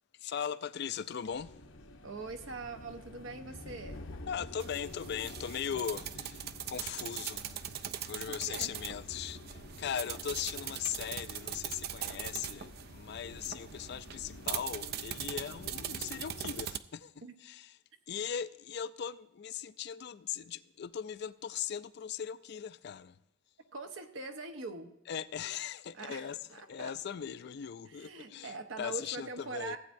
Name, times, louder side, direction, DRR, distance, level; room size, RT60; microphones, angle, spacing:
voice 1, 0.1-1.6 4.3-17.1 17.4-17.7 18.1-23.2 25.1-26.4 26.7-28.5 28.8-29.8, left 8 dB, 55° left, 0.4 m, -39 dB
sound 1, 1.3-16.6, left 2 dB, 80° left, 0.9 m, -49 dB
voice 2, 2.0-4.1 8.3-8.8 17.2-17.3 23.7-24.9 25.9-26.9 27.8-29.8, right 3 dB, 80° right, 1.0 m, -43 dB
sound 2, 4.6-16.8, right 10 dB, 50° right, 0.4 m, -41 dB
15.0 x 8.4 x 2.6 m
head